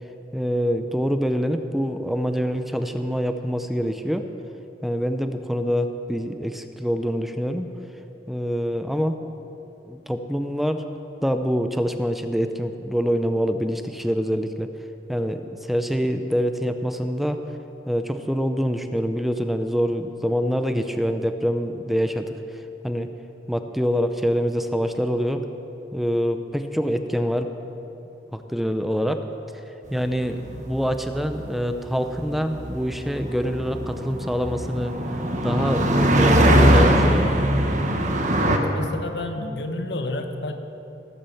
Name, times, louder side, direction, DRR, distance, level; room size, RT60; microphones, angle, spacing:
voice 1, 0.3-4.3 4.8-7.7 8.3-9.3 9.9-10.9 11.2-14.7 15.1-17.4 17.9-22.3 22.8-23.1 23.5-25.4 25.9-27.5 28.3-29.2 29.9-34.9 35.4-37.3, equal, ahead, 7 dB, 0.6 m, -25 dB
sound 1, 30.1-38.6, right 1 dB, 40° right, 1.3 m, -21 dB
voice 2, 38.4-40.6, left 2 dB, 65° left, 6 dB, 1.2 m, -29 dB
18.5 x 8.6 x 7.1 m, 2.9 s
head